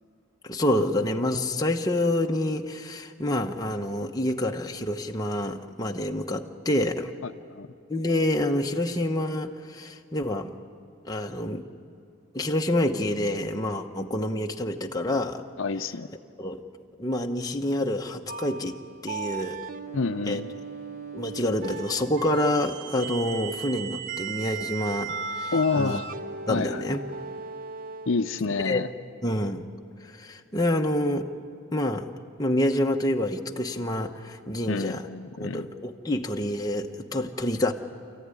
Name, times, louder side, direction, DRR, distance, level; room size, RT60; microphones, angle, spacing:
voice 1, 0.4-7.1 7.9-10.5 11.0-11.7 12.3-15.4 16.4-16.6 17.0-18.8 19.0-19.6 20.3-20.4 21.1-26.0 26.5-27.0 28.6-28.8 29.2-29.7 30.0-31.3 31.7-32.1 32.4-35.1 35.4-37.7, left 1 dB, 15° left, 2 dB, 1.0 m, -27 dB
voice 2, 7.2-7.7 15.6-16.1 19.9-20.5 25.5-26.1 26.5-26.8 28.1-28.9 34.7-35.7, left 4 dB, 65° left, 9 dB, 0.6 m, -28 dB
sound 1, 18.3-28.5, right 6 dB, 40° right, 0.8 m, -37 dB
29.0 x 14.5 x 9.8 m, 2.4 s
head